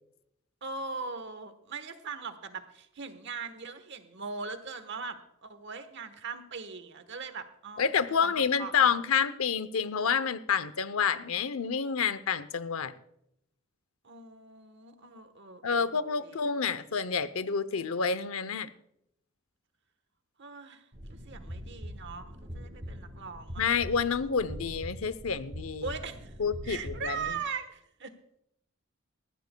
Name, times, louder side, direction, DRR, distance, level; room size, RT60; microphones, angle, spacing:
voice 1, 0.6-8.3 8.6-8.9 14.0-16.4 20.4-23.7 25.8-26.3 26.6-28.1, right 5 dB, 60° right, 10 dB, 1.2 m, -40 dB
voice 2, 7.8-12.9 15.6-18.7 23.6-25.9 26.4-27.2, left 6 dB, 90° left, 14 dB, 0.7 m, -28 dB
sound 1, 20.9-27.3, equal, 40° right, 3.6 m, -43 dB
20.0 x 14.5 x 2.2 m, 0.77 s
head